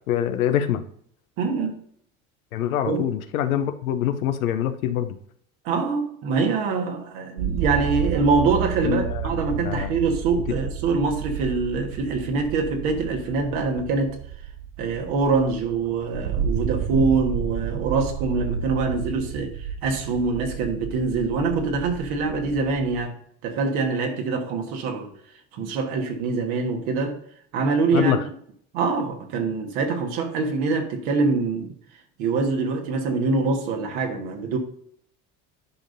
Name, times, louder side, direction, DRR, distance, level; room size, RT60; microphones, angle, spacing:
voice 1, 0.1-0.8 2.5-5.2 8.8-10.0 27.9-28.2, left 10 dB, 90° left, 8 dB, 0.8 m, -25 dB
voice 2, 1.4-1.7 2.9-3.0 5.6-14.1 14.8-19.5 19.8-23.1 23.4-25.1 25.5-27.1 27.5-28.2 28.7-31.7 32.2-34.6, right 4 dB, 70° right, 3 dB, 1.7 m, -24 dB
sound 1, 7.4-23.0, right 8 dB, 55° right, 0.5 m, -31 dB
10.5 x 5.1 x 2.7 m, 0.65 s
hypercardioid pair, 75°, 41 cm